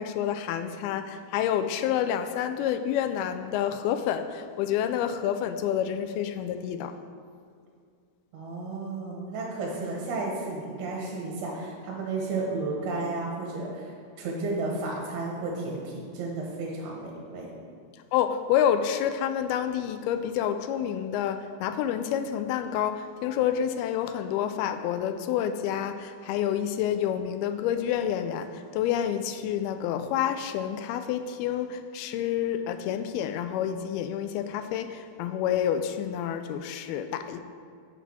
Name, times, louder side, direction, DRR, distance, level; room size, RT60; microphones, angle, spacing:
voice 1, 0.0-7.0 18.1-37.4, left 9 dB, 80° left, 9 dB, 2.3 m, -28 dB
voice 2, 8.3-13.9 14.2-17.5, right 3 dB, 75° right, -2 dB, 3.1 m, -33 dB
9.2 x 6.0 x 6.2 m, 2.2 s
omnidirectional pair, 4.6 m